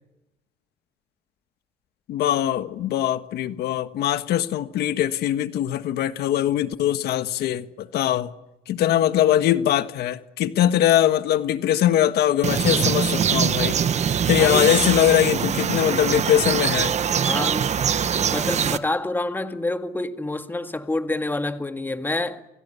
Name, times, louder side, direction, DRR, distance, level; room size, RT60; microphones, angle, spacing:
voice 1, 2.1-8.3 8.7-13.8 14.0-16.9, left 11 dB, 75° left, 1.5 m, -21 dB
sound 1, 12.4-18.8, right 7 dB, 40° right, 1.4 m, -23 dB
voice 2, 14.4-14.8 17.2-17.7 18.3-22.5, left 2 dB, 10° left, 2.0 m, -27 dB
29.0 x 28.5 x 7.1 m
cardioid pair, 110°, 17 cm